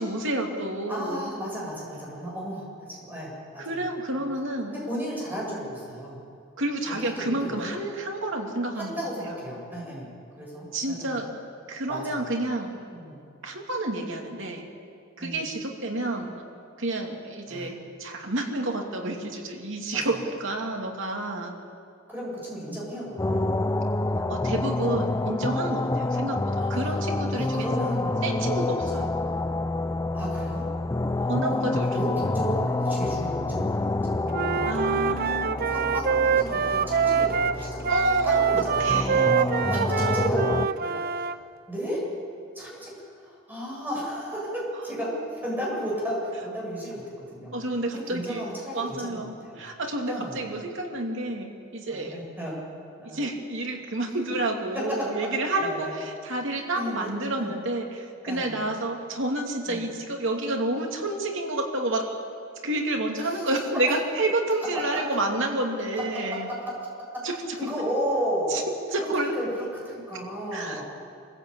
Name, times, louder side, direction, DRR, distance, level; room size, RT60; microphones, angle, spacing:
voice 1, 0.0-1.3 3.6-4.7 6.6-8.9 10.7-11.3 11.7-12.8 13.4-14.7 15.2-16.4 16.8-21.5 24.3-27.6 28.2-29.1 31.3-31.9 34.7-35.6 37.9-38.4 38.8-39.3 39.8-39.9 45.1-45.2 47.5-48.4 48.7-52.2 53.0-62.1 62.6-66.5 67.2-67.4 68.5-68.6 68.9-69.3 70.5-70.8, right 2 dB, 65° right, 2 dB, 2.8 m, -29 dB
voice 2, 0.9-4.3 4.7-6.2 6.9-7.7 8.7-10.1 10.3-11.2 11.9-12.3 12.9-13.2 15.2-15.4 17.5-17.7 19.9-20.2 22.1-23.4 26.6-26.9 27.4-28.2 30.1-30.7 31.1-34.5 35.7-37.8 38.2-38.9 39.3-39.4 39.7-41.3 41.7-42.0 42.5-47.6 47.9-49.6 50.1-50.4 51.9-52.6 53.0-53.2 55.6-55.9 56.7-57.1 57.4-57.5 58.2-58.6 59.7-59.8 63.2-63.4 63.7-63.8 66.3-66.7 67.6-68.6 69.0-69.5 69.8-70.8, equal, 10° right, -4 dB, 7.8 m, -34 dB
sound 1, 23.2-40.7, left 2 dB, 15° left, 0.4 m, -28 dB
Wind instrument woodwind instrument, 34.3-41.4, right 6 dB, 45° right, 0.6 m, -25 dB
25.0 x 15.5 x 8.7 m, 2.4 s
head